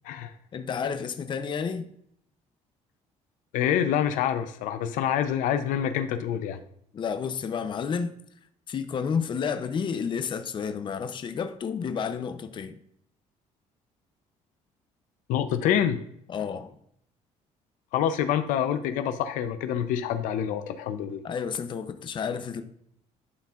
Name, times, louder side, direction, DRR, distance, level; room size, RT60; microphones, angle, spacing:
voice 1, 0.5-1.9 6.9-8.1 8.7-12.8 16.3-16.8 21.2-22.6, left 6 dB, 40° left, 0.6 m, -31 dB
voice 2, 3.5-6.6 15.3-16.0 17.9-21.2, left 9 dB, 85° left, 0.6 m, -26 dB
11.5 x 4.4 x 2.4 m
cardioid pair, 115°, 13 cm